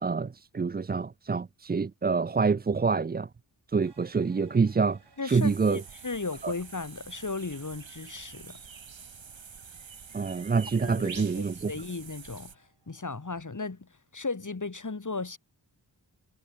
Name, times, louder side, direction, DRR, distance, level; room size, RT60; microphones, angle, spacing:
voice 1, 0.0-3.3 3.7-5.8 6.4-6.5 10.1-11.7, right 5 dB, 25° right, 0.4 m, -27 dB
sound 1, 3.8-13.1, right 4 dB, 65° right, 6.2 m, -64 dB
voice 2, 5.2-8.6 10.8-15.4, left 3 dB, 40° left, 2.7 m, -36 dB
sound 2, 5.3-12.5, right 6 dB, 85° right, 2.2 m, -46 dB
wide cardioid pair, 80°, 44 cm